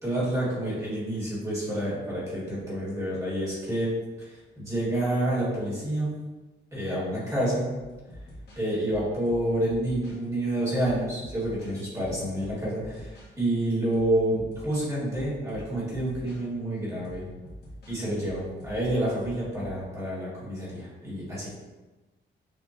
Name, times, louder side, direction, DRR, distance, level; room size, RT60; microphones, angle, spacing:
voice 1, 0.0-3.9 4.6-6.2 6.7-7.7 8.6-17.3 17.9-21.5, right 1 dB, 15° right, -8 dB, 1.5 m, -28 dB
sound 1, 7.8-10.2 10.8-13.3 13.7-16.4 17.0-19.8, equal, 55° left, 1.2 m, -45 dB
6.7 x 2.5 x 2.5 m, 1.2 s
wide cardioid pair, 180°, 20 cm